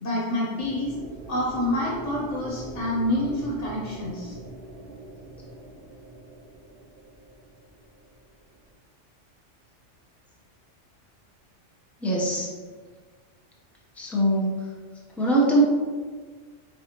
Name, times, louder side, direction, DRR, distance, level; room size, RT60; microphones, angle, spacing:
voice 1, 0.0-1.0 1.3-4.4, left 1 dB, 70° left, -4 dB, 1.2 m, -27 dB
sound 1, 0.6-8.7, right 1 dB, 55° right, 0.9 m, -42 dB
voice 2, 12.0-12.5 13.9-14.7 15.2-15.6, right 1 dB, ahead, -4 dB, 0.6 m, -22 dB
4.8 x 3.5 x 2.9 m, 1.5 s
omnidirectional pair, 1.3 m